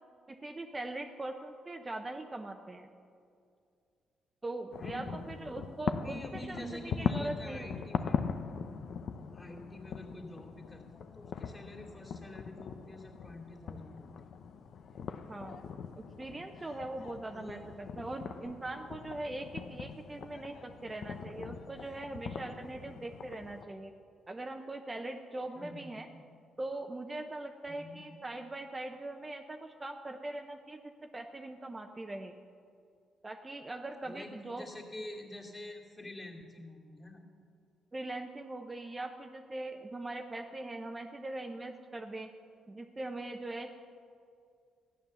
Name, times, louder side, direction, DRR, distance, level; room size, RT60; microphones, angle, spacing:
voice 1, 0.3-2.9 4.4-7.7 15.3-15.6 16.0-23.9 24.3-26.1 26.6-30.8 31.1-32.3 33.2-34.7 37.9-42.3 42.7-43.7, right 2 dB, 20° right, 4 dB, 0.7 m, -41 dB
sound 1, 4.7-23.6, left 6 dB, 65° left, 0.7 m, -40 dB
voice 2, 4.8-5.3 6.0-8.2 9.3-14.3 17.3-17.6 25.5-25.9 27.7-28.0 34.0-37.2, left 1 dB, 20° left, -1 dB, 2.7 m, -47 dB
14.0 x 9.4 x 7.0 m, 2.4 s
cardioid pair, 90°, 0 cm